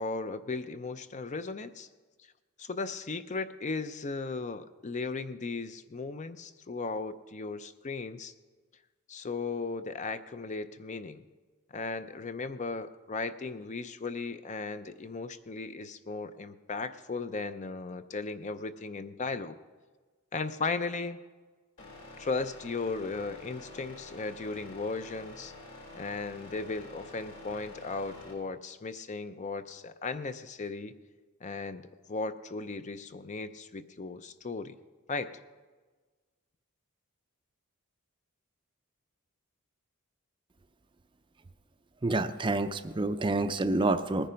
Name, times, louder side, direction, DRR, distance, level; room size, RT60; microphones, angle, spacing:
voice 1, 0.0-1.9 2.6-8.3 9.1-11.2 11.7-19.6 20.3-21.2 22.2-25.5 25.9-30.9 31.4-34.7 35.1-35.4, left 3 dB, 35° left, 11 dB, 0.5 m, -36 dB
sound 1, 21.8-28.3, left 2 dB, 65° left, 4.8 m, -48 dB
voice 2, 42.0-44.3, right 2 dB, 20° right, 10 dB, 0.4 m, -28 dB
19.5 x 9.9 x 5.1 m, 1.4 s
head